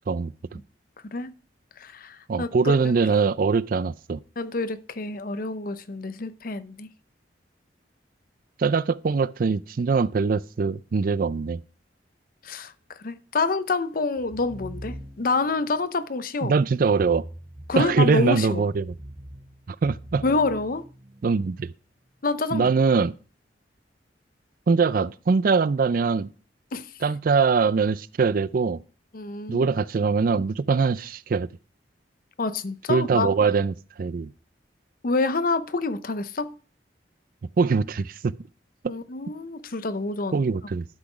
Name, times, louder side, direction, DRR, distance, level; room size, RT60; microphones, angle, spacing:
voice 1, 0.1-0.6 2.3-4.2 8.6-11.6 16.4-17.2 17.8-18.9 19.7-20.2 21.2-21.7 22.5-23.1 24.7-26.3 27.0-28.8 29.5-31.5 32.9-34.3 37.6-38.3 38.8-38.9 40.3-40.9, right 5 dB, 50° right, 0.4 m, -22 dB
voice 2, 1.8-2.9 4.4-6.9 12.4-12.7 13.0-16.6 17.7-18.6 20.2-20.8 22.2-22.7 26.7-26.9 29.1-29.7 32.4-33.3 35.0-36.5 38.9-40.4, left 3 dB, 50° left, 0.7 m, -27 dB
sound 1, 14.2-15.5 16.8-18.2 18.8-21.3, right 1 dB, 25° right, 1.9 m, -41 dB
12.0 x 6.1 x 5.0 m
head